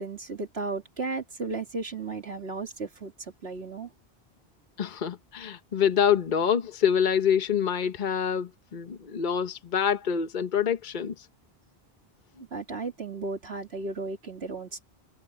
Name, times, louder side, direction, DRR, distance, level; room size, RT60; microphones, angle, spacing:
voice 1, 0.0-3.1 3.4-3.9 12.5-14.8, right 3 dB, 90° right, 2.7 m, -34 dB
voice 2, 4.8-11.3, left 8 dB, 50° left, 1.1 m, -26 dB
omnidirectional pair, 1.0 m